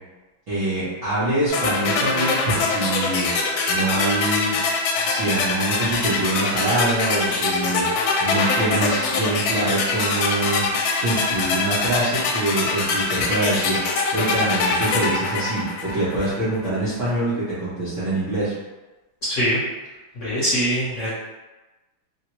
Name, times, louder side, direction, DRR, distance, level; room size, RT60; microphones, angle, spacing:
voice 1, 0.5-3.3 3.7-4.5 5.0-7.8 8.2-10.6 11.0-13.8 14.1-18.5, right 2 dB, 55° right, -12 dB, 0.9 m, -24 dB
sound 1, 1.5-16.4, left 3 dB, 80° left, 1.3 m, -23 dB
voice 2, 19.2-19.6 20.1-21.2, equal, 45° left, -11 dB, 1.1 m, -23 dB
3.4 x 2.1 x 2.9 m, 1.1 s
omnidirectional pair, 2.3 m